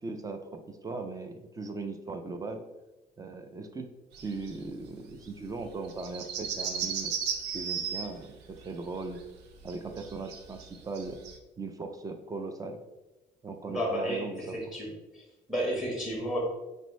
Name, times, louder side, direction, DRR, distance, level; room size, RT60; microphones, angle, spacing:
voice 1, 0.0-2.6 3.2-3.9 4.2-7.1 7.5-9.2 9.6-11.2 11.6-12.8 13.4-14.6, right 3 dB, 20° right, 6 dB, 0.5 m, -38 dB
sound 1, 4.1-4.6 4.9-5.0 5.2-5.3 5.6-11.4, right 7 dB, 85° right, 0.6 m, -35 dB
voice 2, 13.7-15.2 15.5-16.4, equal, ahead, -2 dB, 1.2 m, -32 dB
5.2 x 2.6 x 3.1 m, 1.0 s
cardioid pair, 110°, 17 cm